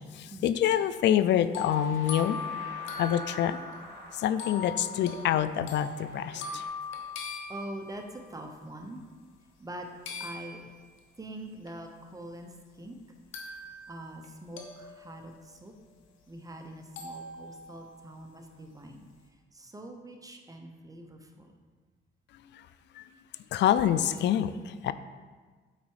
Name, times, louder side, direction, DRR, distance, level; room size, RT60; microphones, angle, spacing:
voice 1, 0.0-2.4 3.0-3.6 4.1-6.6 23.0-23.1 23.5-24.9, left 10 dB, 65° left, 13 dB, 0.4 m, -26 dB
sound 1, 0.7-8.3 10.1-11.0 11.7-11.8 13.3-14.3 14.6-16.3 17.0-18.3, left 4 dB, 85° left, 1.0 m, -40 dB
sound 2, 1.6-6.6, right 1 dB, 70° right, 2.3 m, -49 dB
voice 2, 7.5-9.0 9.6-9.9 10.2-10.6 11.2-13.0 13.9-15.7 16.3-19.0 19.5-21.5, right 1 dB, 15° right, 4 dB, 0.9 m, -44 dB
8.1 x 4.1 x 4.8 m, 1.4 s
cardioid pair, 90°, 20 cm